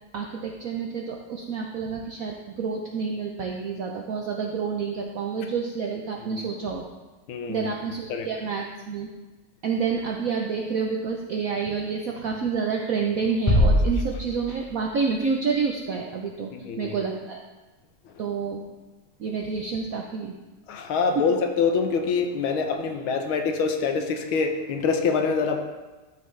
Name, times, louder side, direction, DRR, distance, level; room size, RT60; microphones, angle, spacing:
voice 1, 0.1-6.8 7.5-9.1 9.6-16.5 16.8-17.4 18.2-18.6 19.2-20.4, right 5 dB, 70° right, 1 dB, 0.8 m, -28 dB
voice 2, 7.3-7.7 8.1-8.3 16.5-17.0 20.7-25.6, left 5 dB, 75° left, 5 dB, 1.6 m, -25 dB
sound 1, 13.5-15.0, left 1 dB, 20° left, 0.5 m, -22 dB
12.5 x 5.7 x 3.2 m, 1.2 s
omnidirectional pair, 2.3 m